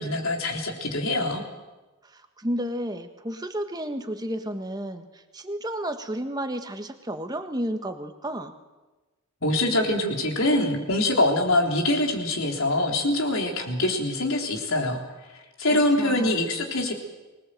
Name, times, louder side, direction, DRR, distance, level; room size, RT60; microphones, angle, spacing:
voice 1, 0.0-1.4 9.4-15.0 15.3-16.9, left 1 dB, 70° left, 2 dB, 3.7 m, -24 dB
voice 2, 2.1-5.0 5.3-8.5 16.0-16.4, right 1 dB, 20° right, 7 dB, 1.4 m, -32 dB
25.0 x 19.5 x 7.8 m, 1.2 s
head